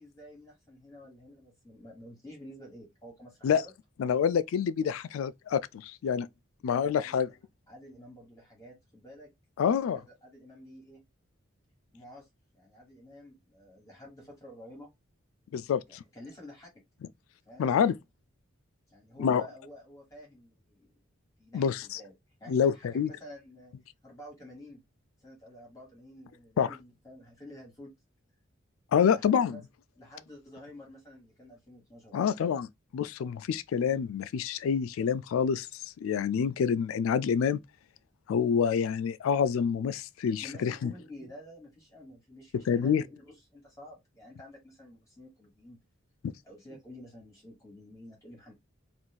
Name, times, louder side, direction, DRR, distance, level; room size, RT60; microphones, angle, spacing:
voice 1, 0.0-3.7 6.8-7.2 7.7-9.3 9.7-11.0 11.9-12.3 12.5-14.9 15.9-16.7 17.5-17.7 18.9-20.9 21.4-22.1 22.4-23.7 24.0-24.8 25.2-27.9 29.1-29.6 30.0-32.4 40.4-45.8 46.4-48.5, equal, 15° left, 1.3 m, -50 dB
voice 2, 4.0-6.3 6.6-7.3 9.6-10.0 15.5-16.0 17.6-18.0 19.2-19.5 21.5-22.0 22.5-23.1 26.6-26.8 28.9-29.6 32.1-32.7 32.9-37.6 38.3-40.9 42.5-43.0, left 7 dB, 90° left, 0.3 m, -27 dB
2.5 x 2.4 x 3.7 m
head